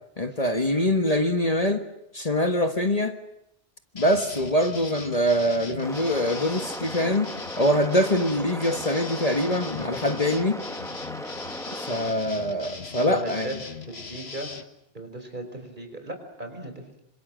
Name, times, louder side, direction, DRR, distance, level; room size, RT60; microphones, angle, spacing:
voice 1, 0.2-1.8 2.1-3.2 3.9-7.3 7.6-10.6 11.7-13.5, left 1 dB, 40° left, 7 dB, 1.6 m, -24 dB
sound 1, 4.0-14.6, left 5 dB, 80° left, 1.8 m, -40 dB
sound 2, 5.8-12.1, equal, 5° left, 1.4 m, -37 dB
voice 2, 13.0-13.6 13.9-14.5 14.9-17.0, right 1 dB, 50° right, 6 dB, 5.0 m, -36 dB
27.5 x 26.0 x 7.7 m, 0.80 s
omnidirectional pair, 1.0 m